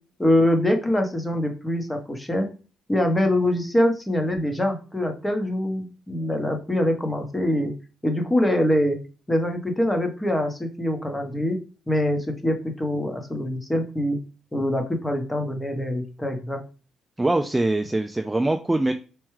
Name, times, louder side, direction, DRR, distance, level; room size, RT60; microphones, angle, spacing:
voice 1, 0.2-2.5 2.9-7.7 8.0-9.0 9.3-11.6 11.9-14.2 14.5-16.6, left 1 dB, 15° left, 4 dB, 0.9 m, -24 dB
voice 2, 17.2-18.9, right 2 dB, 15° right, 6 dB, 0.3 m, -23 dB
4.6 x 2.2 x 3.1 m, 0.35 s
cardioid pair, 90°, 0 cm